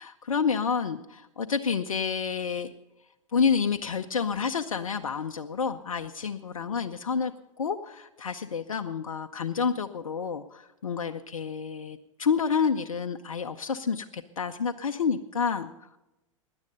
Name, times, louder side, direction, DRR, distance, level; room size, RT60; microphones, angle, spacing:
voice 1, 0.0-2.7 3.3-7.3 7.6-16.0, left 6 dB, 80° left, 7 dB, 0.6 m, -29 dB
17.0 x 11.0 x 5.3 m, 0.97 s
hypercardioid pair, 100°, 17 cm